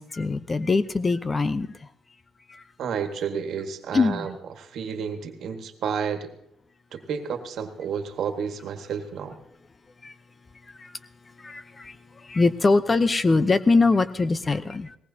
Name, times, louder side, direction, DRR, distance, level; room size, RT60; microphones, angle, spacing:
voice 1, 0.0-1.7 2.5-2.6 3.9-4.3 10.0-10.1 10.8-10.9 11.4-11.9 12.3-15.0, left 3 dB, 30° left, 13 dB, 0.7 m, -22 dB
voice 2, 2.8-6.3 6.9-9.4, right 7 dB, 70° right, 6 dB, 1.6 m, -31 dB
20.0 x 18.0 x 2.8 m, 0.75 s
cardioid pair, 90°, 0 cm